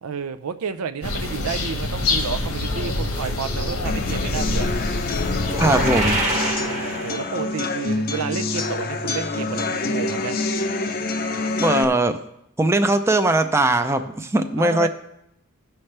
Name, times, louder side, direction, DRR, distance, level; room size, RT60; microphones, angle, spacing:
voice 1, 0.0-4.7 6.6-10.4 14.6-14.9, right 6 dB, 80° right, 10 dB, 0.5 m, -30 dB
sound 1, 1.0-6.2, left 2 dB, 85° left, 1.3 m, -26 dB
sound 2, 3.9-11.8, left 3 dB, 45° left, 0.6 m, -26 dB
sound 3, 5.4-7.6, right 2 dB, 35° right, 1.3 m, -26 dB
voice 2, 5.6-6.2 11.6-12.2 12.6-14.9, right 2 dB, 10° right, 7 dB, 0.4 m, -20 dB
15.5 x 5.7 x 3.3 m, 0.79 s
head